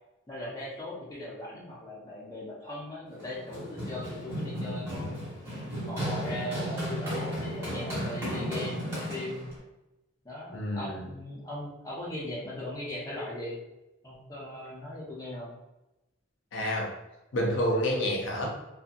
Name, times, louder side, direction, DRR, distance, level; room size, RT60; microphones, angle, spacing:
voice 1, 0.3-5.1 5.9-9.5 10.2-13.6 14.0-15.5, left 1 dB, 15° left, -6 dB, 0.6 m, -39 dB
Run, 3.2-9.6, equal, 15° right, 1.1 m, -34 dB
voice 2, 10.5-11.0 16.5-16.9 17.3-18.5, equal, 65° left, -1 dB, 0.5 m, -28 dB
2.7 x 2.4 x 2.5 m, 0.96 s
head